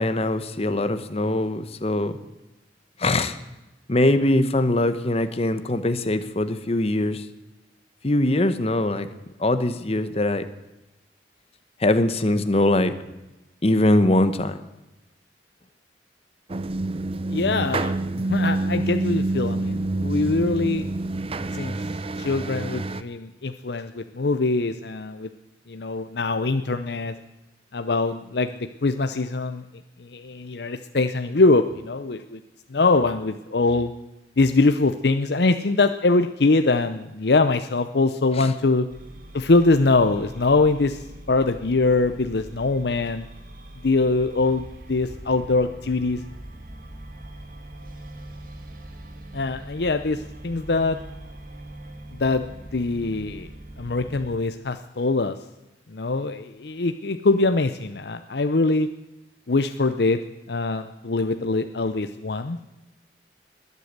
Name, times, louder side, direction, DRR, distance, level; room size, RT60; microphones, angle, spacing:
voice 1, 0.0-2.1 3.0-3.4 3.9-7.2 8.0-9.1 9.4-10.5 11.8-12.9 13.6-14.6 38.4-38.5, left 1 dB, 35° left, 11 dB, 0.9 m, -22 dB
sound 1, 16.5-23.0, right 2 dB, 30° right, 0.6 m, -27 dB
voice 2, 17.3-17.9 18.3-20.9 21.5-21.8 22.2-25.3 25.7-27.1 27.7-29.6 30.0-32.4 32.7-33.9 34.4-38.9 39.3-43.3 43.8-44.6 44.9-46.2 49.3-51.0 52.2-53.5 53.8-55.4 55.9-58.9 59.5-60.2 60.5-62.6, left 3 dB, 60° left, 8 dB, 0.7 m, -23 dB
sound 2, 38.9-54.3, right 1 dB, 50° right, 1.9 m, -42 dB
21.0 x 8.3 x 8.1 m, 1.0 s
head